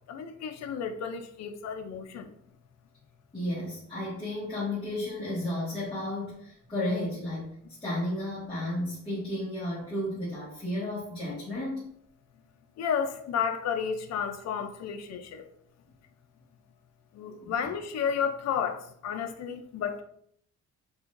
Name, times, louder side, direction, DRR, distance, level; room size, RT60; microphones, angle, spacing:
voice 1, 0.1-2.3 12.8-15.4 17.1-20.0, left 7 dB, 55° left, 6 dB, 0.5 m, -32 dB
voice 2, 3.3-7.5 7.8-11.9 17.4-17.5, left 1 dB, 15° left, -12 dB, 1.8 m, -33 dB
6.2 x 3.0 x 2.5 m, 0.67 s
cardioid pair, 160°, 31 cm